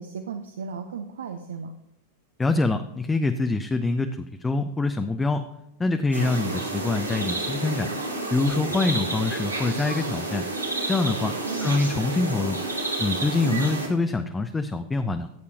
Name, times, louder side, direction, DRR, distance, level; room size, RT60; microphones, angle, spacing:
voice 1, 0.0-1.7 11.4-11.7 13.4-13.7, right 6 dB, 65° right, 7 dB, 0.7 m, -34 dB
voice 2, 2.4-5.5 5.8-7.9 8.3-10.4 10.9-11.3 11.6-12.6 13.0-15.3, left 3 dB, 10° left, 7 dB, 0.5 m, -25 dB
sound 1, 6.1-13.9, right 2 dB, 85° right, 1.9 m, -30 dB
14.5 x 8.4 x 2.9 m, 0.86 s
figure-of-eight pair, 90°, 0 cm